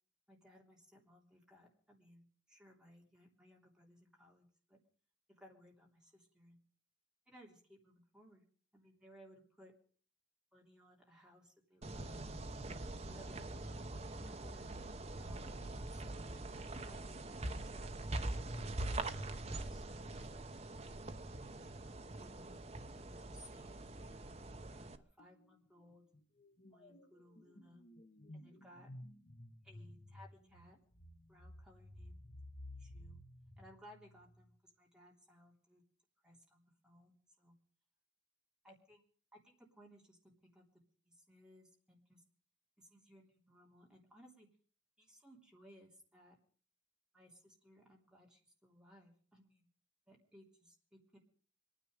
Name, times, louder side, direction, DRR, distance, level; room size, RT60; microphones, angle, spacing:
voice 1, 0.3-4.8 5.3-6.6 7.3-8.4 8.7-9.7 10.5-12.6 13.0-13.7 14.1-14.8 15.2-17.9 19.4-20.1 20.8-21.0 21.6-22.5 22.9-26.0 26.7-27.8 28.3-28.9 29.6-30.8 31.3-32.2 32.8-33.2 33.6-35.8 36.2-37.5 38.6-39.0 39.3-40.6 41.0-42.2 42.8-44.5 45.0-46.4 47.1-49.7 50.1-51.2, equal, 5° right, -2 dB, 3.3 m, -63 dB
sound 1, 11.8-25.0, right 2 dB, 35° right, 0.9 m, -43 dB
sound 2, 25.2-25.5 25.8-34.6, left 1 dB, 40° left, 1.3 m, -55 dB
25.5 x 10.0 x 5.1 m, 0.43 s
head